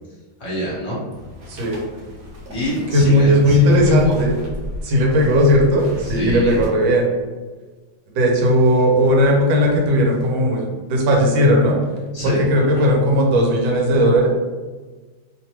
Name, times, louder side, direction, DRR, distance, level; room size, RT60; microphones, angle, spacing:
voice 1, 0.4-1.0 2.5-4.1 6.1-6.6 12.1-12.4, right 1 dB, 50° left, -6 dB, 1.0 m, -25 dB
sound 1, 1.1-6.7, left 2 dB, 60° right, 0.9 m, -34 dB
voice 2, 1.5-1.8 2.9-4.3 4.8-7.1 8.1-11.8 12.2-14.3, equal, 75° right, -1 dB, 1.4 m, -16 dB
3.2 x 2.2 x 2.9 m, 1.3 s
omnidirectional pair, 2.2 m